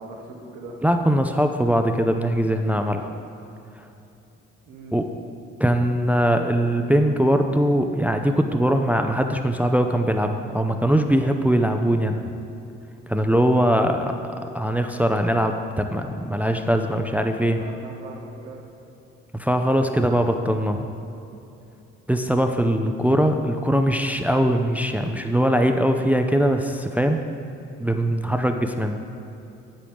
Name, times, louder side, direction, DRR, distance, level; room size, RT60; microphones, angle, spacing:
voice 1, 0.0-0.8 4.7-5.0 17.5-18.6 28.5-28.9, right 3 dB, 85° right, -1 dB, 1.2 m, -41 dB
voice 2, 0.8-3.1 4.9-5.1 5.6-12.2 13.1-17.6 19.3-20.9 22.1-27.2 27.8-29.0, equal, 5° right, 5 dB, 0.5 m, -21 dB
8.2 x 7.8 x 3.5 m, 2.8 s
hypercardioid pair, 50°, 30 cm